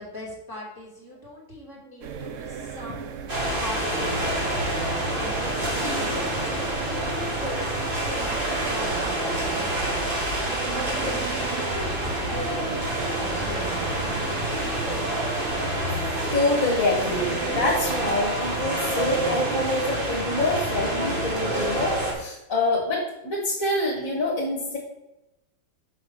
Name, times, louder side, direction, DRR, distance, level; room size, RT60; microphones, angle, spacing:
voice 1, 0.0-10.2 10.7-13.8 14.2-15.7, left 1 dB, 10° right, -6 dB, 2.4 m, -40 dB
sound 1, 2.0-18.6, right 7 dB, 75° right, 0.7 m, -37 dB
sound 2, 3.3-22.1, right 1 dB, 30° right, 1.6 m, -27 dB
voice 2, 16.3-24.8, left 2 dB, 45° left, -3 dB, 1.7 m, -26 dB
6.0 x 5.0 x 6.4 m, 0.90 s
omnidirectional pair, 2.1 m